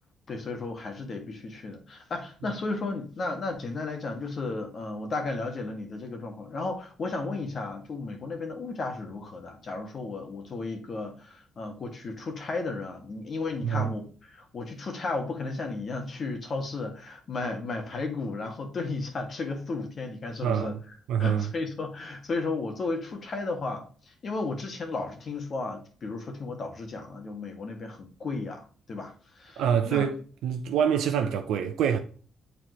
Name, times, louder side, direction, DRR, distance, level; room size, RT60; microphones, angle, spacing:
voice 1, 0.3-20.8 21.2-23.8 24.2-28.6 28.9-30.1, left 3 dB, 50° left, 1.7 m, -34 dB
voice 2, 20.4-20.8 21.1-21.5 29.6-32.0, right 8 dB, 85° right, 0.6 m, -26 dB
8.1 x 4.3 x 3.1 m
cardioid pair, 90°, 0 cm